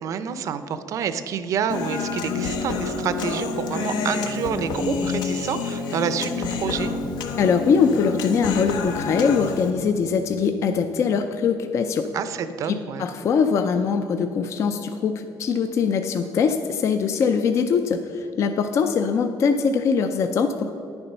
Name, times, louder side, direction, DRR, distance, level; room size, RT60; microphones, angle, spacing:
voice 1, 0.0-6.9 12.1-13.1, right 7 dB, 50° right, 11 dB, 0.5 m, -28 dB
Human voice, 1.7-9.7, left 4 dB, 80° left, 0.8 m, -28 dB
voice 2, 7.4-12.1 12.7-20.7, left 6 dB, 40° left, 7 dB, 0.4 m, -22 dB
10.0 x 7.0 x 5.4 m, 2.9 s
cardioid pair, 170°, 7 cm